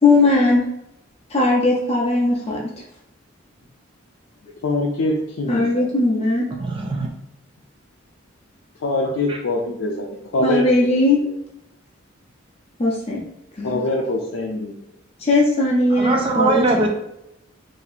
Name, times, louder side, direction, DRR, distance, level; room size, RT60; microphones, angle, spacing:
voice 1, 0.0-0.6 1.3-2.7 5.5-6.5 10.4-11.2 12.8-13.2 13.6-13.8 15.2-16.9, left 2 dB, 30° left, -3 dB, 0.6 m, -18 dB
voice 2, 4.6-5.9 8.8-10.1 10.3-10.6 13.6-14.7, left 2 dB, 85° left, -3 dB, 0.5 m, -23 dB
voice 3, 6.6-7.1 9.0-9.4 15.9-16.9, right 2 dB, 25° right, 2 dB, 0.3 m, -21 dB
2.8 x 2.7 x 4.0 m, 0.85 s
head